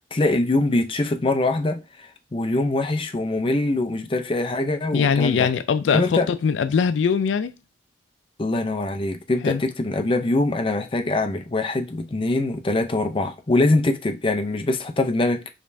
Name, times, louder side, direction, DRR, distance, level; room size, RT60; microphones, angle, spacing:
voice 1, 0.1-5.5 5.9-6.3 8.4-15.4, left 2 dB, 30° left, 0.5 m, -23 dB
voice 2, 4.9-7.5 9.4-9.6, left 6 dB, 75° left, 0.3 m, -21 dB
5.1 x 3.2 x 2.6 m
head